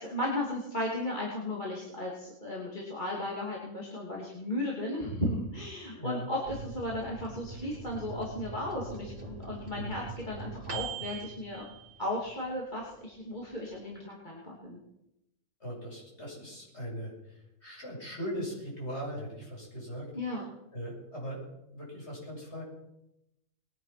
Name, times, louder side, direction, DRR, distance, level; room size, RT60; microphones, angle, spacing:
voice 1, 0.0-11.7 12.0-14.8 20.1-20.4, left 1 dB, 30° left, -4 dB, 3.1 m, -35 dB
voice 2, 5.9-6.3 9.7-10.1 15.6-20.1 20.7-21.4 21.7-22.6, equal, 50° left, -3 dB, 8.0 m, -39 dB
Microwave oven, 6.5-12.5 12.9-13.0 13.3-13.9, right 4 dB, 50° right, 3.1 m, -42 dB
21.5 x 10.0 x 6.1 m, 0.85 s
omnidirectional pair, 1.5 m